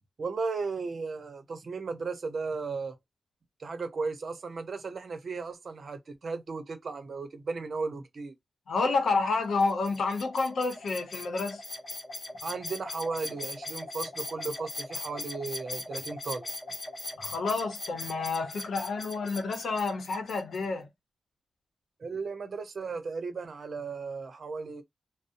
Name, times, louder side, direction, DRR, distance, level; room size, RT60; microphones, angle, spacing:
voice 1, 0.2-3.0 3.6-8.3 12.4-16.5 22.0-24.8, right 4 dB, 60° right, 0.7 m, -35 dB
voice 2, 8.7-11.6 17.2-20.9, left 3 dB, 80° left, 0.7 m, -29 dB
sound 1, 9.6-20.6, left 2 dB, 40° left, 0.8 m, -40 dB
2.6 x 2.0 x 2.5 m
cardioid pair, 85°, 0 cm